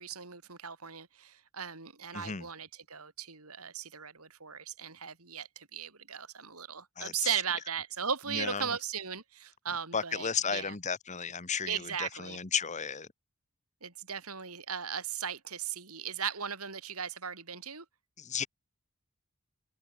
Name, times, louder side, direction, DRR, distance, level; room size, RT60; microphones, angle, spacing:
voice 1, 0.0-10.7 11.7-12.4 13.8-17.8, right 7 dB, 80° right, 4.5 m, -37 dB
voice 2, 2.1-2.4 7.0-7.3 8.3-8.7 9.9-13.1 18.2-18.5, left 6 dB, 35° left, 1.3 m, -34 dB
head